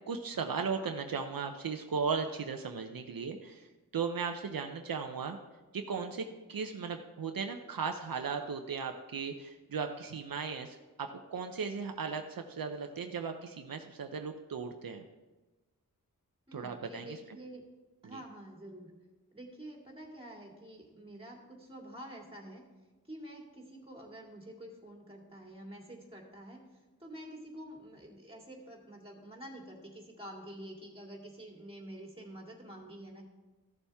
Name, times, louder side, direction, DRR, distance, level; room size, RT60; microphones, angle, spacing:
voice 1, 0.1-3.7 3.9-5.4 5.7-15.0 16.5-17.2 18.0-18.2, right 5 dB, 75° right, 5 dB, 0.7 m, -37 dB
voice 2, 16.5-17.6 18.0-18.9 19.3-22.6 23.1-26.6 27.0-33.3, right 1 dB, 15° right, -1 dB, 2.2 m, -48 dB
14.0 x 7.0 x 3.5 m, 1.1 s
wide cardioid pair, 105°, 35 cm